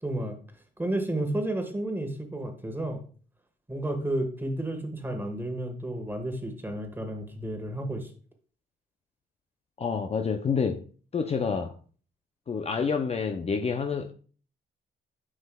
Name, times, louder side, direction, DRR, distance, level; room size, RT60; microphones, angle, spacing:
voice 1, 0.0-0.4 0.8-3.0 3.7-8.1, right 1 dB, 10° right, 1.4 m, -31 dB
voice 2, 9.8-10.8 11.1-11.8 12.5-14.1, left 5 dB, 30° left, 0.5 m, -28 dB
9.5 x 5.5 x 2.3 m
cardioid pair, 90°, 20 cm